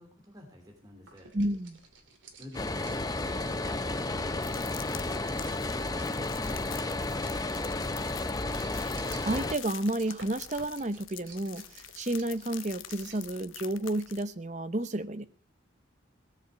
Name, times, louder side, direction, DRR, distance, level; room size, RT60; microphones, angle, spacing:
voice 1, 0.0-1.3 2.4-3.6, left 1 dB, 20° right, 2 dB, 3.0 m, -49 dB
sound 1, 1.1-13.3, right 4 dB, 75° right, 2.6 m, -55 dB
voice 2, 1.3-1.8 8.8-15.3, right 1 dB, 35° right, 12 dB, 0.9 m, -31 dB
sound 2, 2.5-9.5, left 2 dB, 20° left, 0.7 m, -32 dB
sound 3, 4.4-14.2, left 12 dB, 85° left, 0.9 m, -46 dB
18.0 x 7.4 x 8.0 m, 0.44 s
head